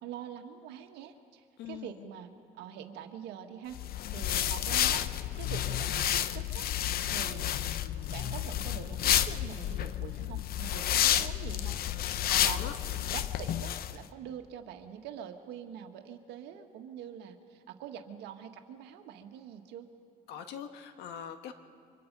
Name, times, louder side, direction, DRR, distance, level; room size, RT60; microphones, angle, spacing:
voice 1, 0.0-2.3 2.6-3.8 4.1-5.0 5.4-6.7 7.1-7.5 8.1-19.9, right 9 dB, 90° right, 6 dB, 1.7 m, -45 dB
voice 2, 1.6-1.9 12.3-12.8 20.3-21.5, left 9 dB, 85° left, 7 dB, 1.5 m, -41 dB
sound 1, 3.7-13.9, left 11 dB, 65° left, 0.7 m, -30 dB
29.5 x 25.0 x 5.4 m, 2.3 s
cardioid pair, 110°, 17 cm